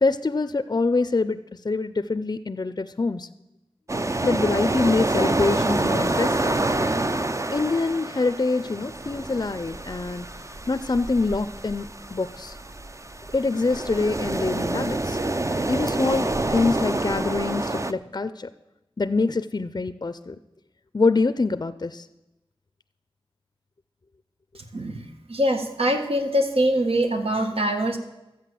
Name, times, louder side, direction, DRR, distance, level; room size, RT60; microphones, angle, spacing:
voice 1, 0.0-3.3 4.2-6.6 7.5-10.3 10.7-12.5 13.3-15.2 15.7-18.5 19.0-20.3 20.9-22.0, left 3 dB, 45° left, 12 dB, 0.5 m, -25 dB
sound 1, 3.9-17.9, right 2 dB, 30° right, 0.6 m, -27 dB
voice 2, 24.7-28.0, equal, 75° right, 4 dB, 1.5 m, -23 dB
13.0 x 8.5 x 7.6 m, 0.97 s
wide cardioid pair, 65°, 10 cm